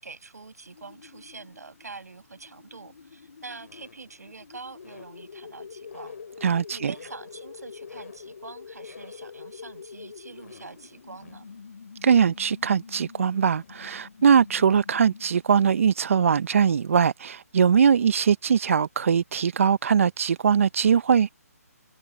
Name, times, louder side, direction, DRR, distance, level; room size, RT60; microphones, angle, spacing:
voice 1, 0.0-6.2 6.7-11.5, right 4 dB, 80° right, 6.4 m, -45 dB
sound 1, 0.7-15.5, left 6 dB, 65° left, 4.8 m, -45 dB
voice 2, 6.4-6.9 12.0-21.3, right 7 dB, 55° right, 0.7 m, -21 dB
figure-of-eight pair, 150°, 9 cm